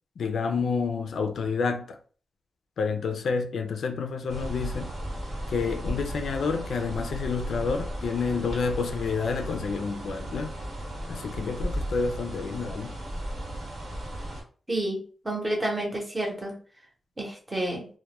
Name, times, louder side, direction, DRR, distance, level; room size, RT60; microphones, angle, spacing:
voice 1, 0.2-2.0 2.8-4.9 5.5-10.6 11.1-13.0, left 5 dB, 75° left, 0.3 m, -29 dB
sound 1, 4.3-14.4, right 1 dB, 60° right, 0.9 m, -35 dB
voice 2, 14.7-15.0 15.2-16.5 17.2-17.9, right 1 dB, 20° right, 0.7 m, -29 dB
2.2 x 2.1 x 2.9 m
wide cardioid pair, 175°, 0 cm